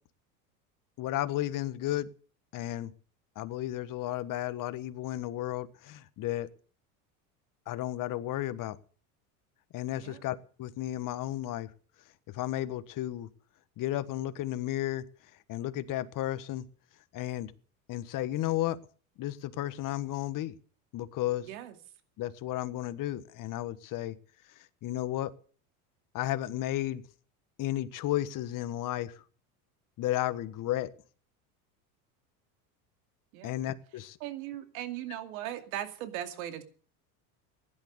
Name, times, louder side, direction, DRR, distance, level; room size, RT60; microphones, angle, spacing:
voice 1, 1.0-2.1 2.5-2.9 3.3-6.5 7.7-8.8 9.7-11.7 12.3-13.3 13.8-15.0 15.5-16.6 17.1-17.5 17.9-18.8 19.2-20.5 20.9-21.5 22.2-24.2 24.8-25.3 26.1-27.0 27.6-29.2 30.0-30.9 33.4-34.2, left 14 dB, 50° left, 13 dB, 1.4 m, -33 dB
voice 2, 21.4-21.8 33.3-33.6 34.2-36.6, right 12 dB, 80° right, 8 dB, 2.5 m, -38 dB
16.0 x 11.0 x 6.8 m, 0.43 s
supercardioid pair, 100°, 42 cm